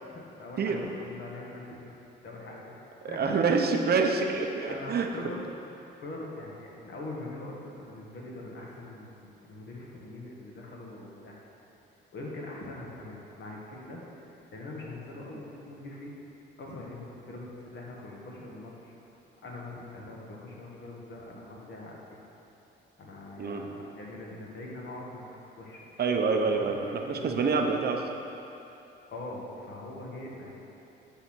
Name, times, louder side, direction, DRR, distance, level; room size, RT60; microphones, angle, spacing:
voice 1, 0.0-1.9 2.2-3.5 4.6-5.5 6.0-11.5 12.1-14.0 14.3-16.1 16.6-18.9 19.4-22.0 23.0-25.3 25.5-25.9 26.3-27.3 29.1-30.6, left 2 dB, 60° left, -3 dB, 1.8 m, -42 dB
voice 2, 3.0-5.1 23.4-23.7 26.0-26.8 27.1-28.0, right 4 dB, 55° right, 3 dB, 0.7 m, -26 dB
9.8 x 4.1 x 6.1 m, 2.8 s
cardioid pair, 90°, 20 cm